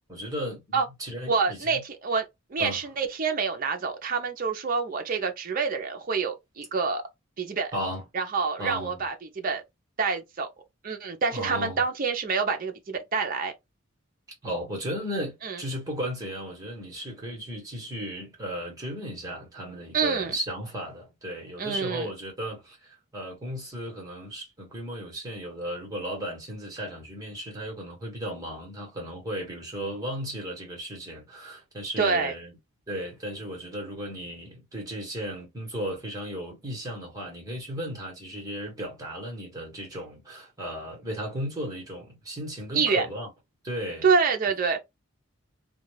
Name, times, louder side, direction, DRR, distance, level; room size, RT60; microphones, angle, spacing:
voice 1, 0.1-1.8 2.6-2.8 7.7-8.0 8.6-9.0 11.3-11.8 14.4-32.5 32.9-43.3 43.6-44.1, equal, 15° right, 1.1 m, -35 dB
voice 2, 1.3-2.2 2.5-7.0 7.4-7.7 8.1-9.6 10.0-10.5 10.8-13.5 15.4-15.6 19.9-20.3 21.6-22.1 32.0-32.3 42.7-43.1 44.0-44.8, right 5 dB, 40° right, 0.5 m, -27 dB
2.3 x 2.2 x 3.2 m
head